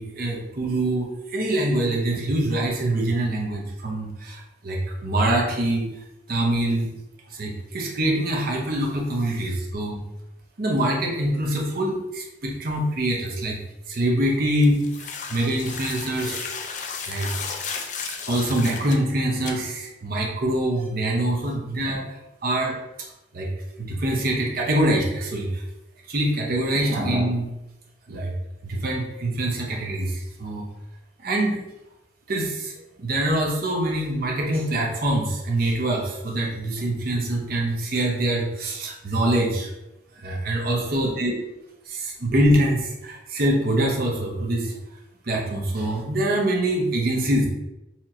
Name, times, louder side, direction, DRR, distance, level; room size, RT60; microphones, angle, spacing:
voice 1, 0.0-5.9 6.3-6.9 7.3-10.0 10.6-13.6 13.9-16.5 17.1-17.3 18.3-22.8 23.3-23.5 23.8-25.6 26.1-27.5 28.1-28.3 28.6-30.6 31.2-31.6 32.3-32.7 33.0-39.7 40.2-41.3 41.9-44.7 45.2-47.5, right 1 dB, 50° right, -1 dB, 0.7 m, -24 dB
sound 1, 14.6-19.0 19.5-19.6, left 5 dB, 40° left, 0.3 m, -34 dB
4.2 x 2.9 x 2.5 m, 0.95 s
head